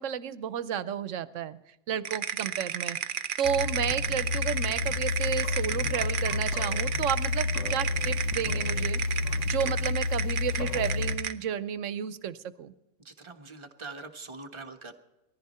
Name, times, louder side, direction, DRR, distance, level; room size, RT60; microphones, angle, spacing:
voice 1, 0.0-1.6 1.9-3.0 3.4-9.0 9.5-12.7, right 8 dB, 85° right, 15 dB, 1.1 m, -32 dB
sound 1, 2.0-11.4, right 8 dB, 50° right, 0.7 m, -32 dB
sound 2, 3.4-11.2, left 4 dB, 75° left, 1.2 m, -30 dB
voice 2, 13.0-14.9, right 3 dB, 25° right, 5 dB, 1.3 m, -43 dB
19.5 x 14.0 x 4.3 m, 0.97 s
omnidirectional pair, 1.3 m